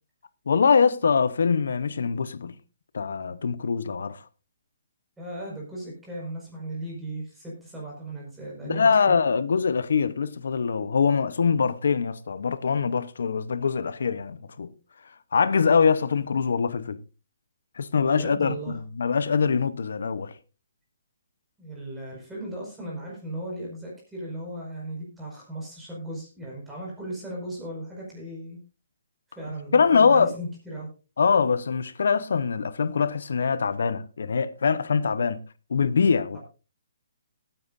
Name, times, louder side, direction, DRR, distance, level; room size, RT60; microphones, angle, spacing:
voice 1, 0.5-2.5 2.9-4.2 8.6-14.7 15.3-17.0 17.8-18.6 19.0-20.3 29.7-30.3 31.2-35.4 35.7-36.4, left 5 dB, 75° left, 0.9 m, -23 dB
voice 2, 5.2-9.1 18.1-18.8 21.6-28.6 29.3-30.9 36.3-36.4, right 1 dB, 5° right, 5.1 m, -37 dB
20.0 x 9.3 x 2.6 m
hypercardioid pair, 160°, 0 cm